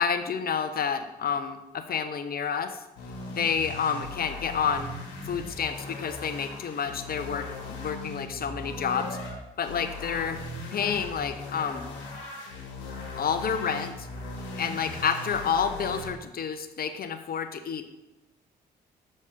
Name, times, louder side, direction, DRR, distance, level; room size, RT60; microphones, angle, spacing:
voice 1, 0.0-2.8 3.3-4.9 5.3-9.1 9.6-10.4 10.7-11.9 13.2-13.9 14.6-17.8, left 7 dB, 50° left, 8 dB, 0.8 m, -29 dB
sound 1, 3.0-9.3 9.6-16.1, left 2 dB, 90° left, 1.3 m, -38 dB
6.5 x 4.2 x 5.1 m, 0.98 s
hypercardioid pair, 50°, 20 cm